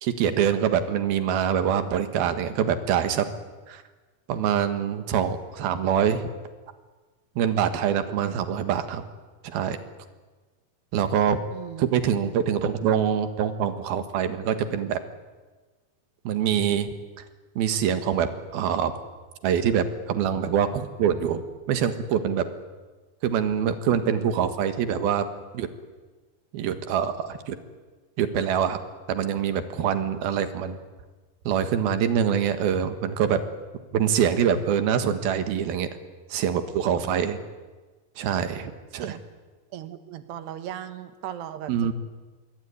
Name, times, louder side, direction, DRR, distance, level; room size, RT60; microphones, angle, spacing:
voice 1, 0.0-3.3 3.7-3.8 4.3-6.2 7.4-9.0 9.4-9.8 10.9-11.4 11.8-15.0 16.2-16.9 17.6-18.9 19.4-21.4 21.7-22.4 23.2-25.3 25.5-25.7 26.5-27.6 28.2-28.8 29.1-30.8 31.5-33.4 33.9-35.9 36.3-37.4 38.2-39.1 41.7-41.9, right 8 dB, 70° right, 10 dB, 3.4 m, -24 dB
voice 2, 11.5-11.9 39.0-39.2 39.7-41.9, right 10 dB, 85° right, 10 dB, 3.6 m, -37 dB
27.0 x 21.5 x 9.7 m, 1.3 s
omnidirectional pair, 4.6 m